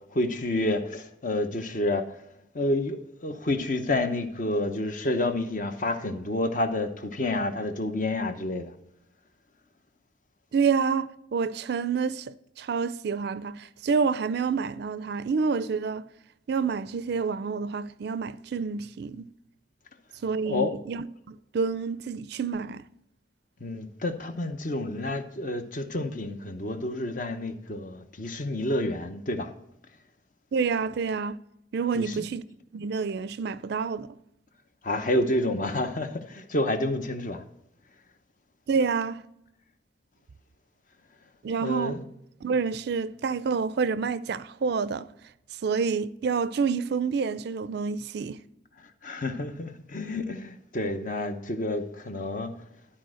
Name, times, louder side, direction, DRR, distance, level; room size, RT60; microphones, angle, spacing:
voice 1, 0.1-2.2 2.5-8.7 20.4-20.7 23.6-29.5 31.9-32.3 34.8-37.4 41.6-42.0 49.0-52.5, left 1 dB, 45° left, 0.8 m, -29 dB
voice 2, 10.5-16.1 16.5-19.3 20.2-22.8 30.5-31.4 31.7-32.4 32.7-34.1 38.7-39.2 41.4-42.0 42.4-45.1 45.6-48.4, right 5 dB, 60° right, 0.4 m, -28 dB
12.0 x 4.3 x 6.2 m
head